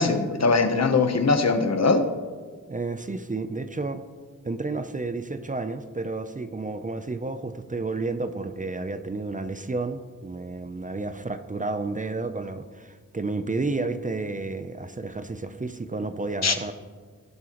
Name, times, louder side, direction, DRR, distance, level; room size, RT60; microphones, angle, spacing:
voice 1, 0.0-2.1 16.4-16.5, left 4 dB, 55° left, 7 dB, 1.0 m, -21 dB
voice 2, 2.7-4.0 4.4-16.7, right 3 dB, 25° right, 9 dB, 0.6 m, -31 dB
17.5 x 7.6 x 3.0 m, 1.5 s
wide cardioid pair, 70°, 31 cm